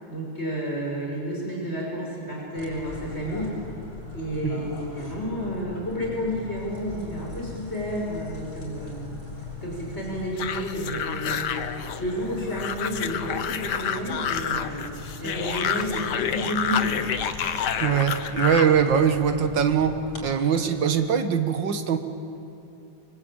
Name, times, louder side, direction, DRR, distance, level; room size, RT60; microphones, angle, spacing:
voice 1, 0.1-3.5 4.1-9.2 9.6-11.6 12.0-14.8 15.2-17.1, equal, 30° left, -3 dB, 6.1 m, -31 dB
sound 1, 2.5-20.3, left 3 dB, 85° left, 6.6 m, -40 dB
sound 2, 10.4-18.8, left 8 dB, 60° left, 1.6 m, -29 dB
voice 2, 17.8-22.0, right 7 dB, 65° right, 8 dB, 2.1 m, -22 dB
24.5 x 24.0 x 8.8 m, 2.9 s
omnidirectional pair, 2.2 m